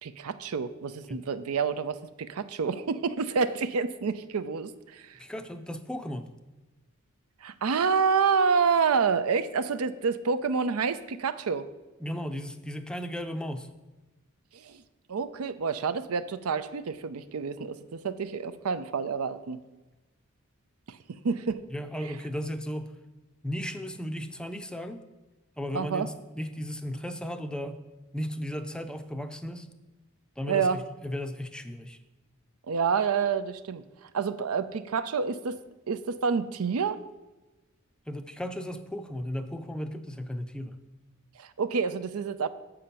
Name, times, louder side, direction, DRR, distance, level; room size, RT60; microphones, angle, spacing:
voice 1, 0.0-5.2 7.4-11.7 14.5-14.8 15.1-19.6 20.9-21.0 21.2-21.6 25.7-26.1 30.5-30.8 32.7-33.8 34.1-35.6 35.9-37.0 41.4-42.5, right 5 dB, 85° right, 12 dB, 0.5 m, -28 dB
voice 2, 5.2-6.3 12.0-13.7 21.7-22.9 23.4-25.0 25.6-27.8 28.1-29.7 30.4-32.0 38.1-40.8, equal, 5° left, 8 dB, 0.5 m, -35 dB
7.5 x 5.8 x 6.8 m, 1.1 s
head